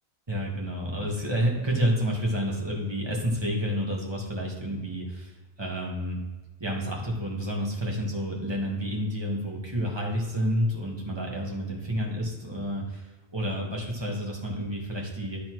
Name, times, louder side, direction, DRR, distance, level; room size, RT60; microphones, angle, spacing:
voice 1, 0.3-6.2 6.6-15.4, equal, 25° right, -2 dB, 1.7 m, -29 dB
11.5 x 4.1 x 4.6 m, 1.2 s
omnidirectional pair, 1.1 m